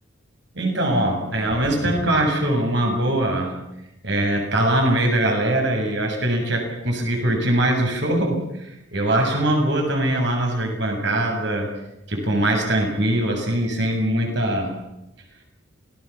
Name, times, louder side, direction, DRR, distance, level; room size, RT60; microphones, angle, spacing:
voice 1, 0.5-3.6 4.0-11.7 12.1-14.8, right 1 dB, 55° right, 2 dB, 7.5 m, -22 dB
28.0 x 19.5 x 7.3 m, 0.88 s
head